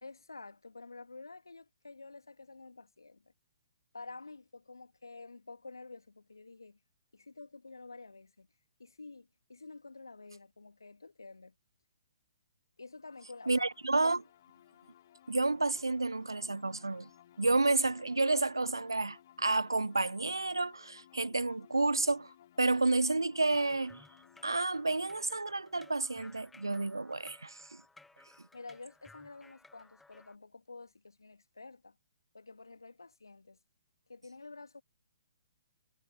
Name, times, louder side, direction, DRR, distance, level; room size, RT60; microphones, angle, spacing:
voice 1, 0.0-3.3 3.9-6.8 7.1-8.5 8.8-11.5 12.8-13.7 28.5-32.0 32.3-33.6 34.1-34.8, left 3 dB, 75° left, 2.3 m, -50 dB
sound 1, 13.0-26.5, left 11 dB, 45° left, 1.7 m, -61 dB
voice 2, 13.5-14.2 15.3-17.1 17.4-22.3 22.6-24.0 24.4-27.8, right 2 dB, 85° right, 0.4 m, -30 dB
sound 2, 23.5-30.4, left 3 dB, 5° left, 1.0 m, -60 dB
figure-of-eight pair, 125°, 2 cm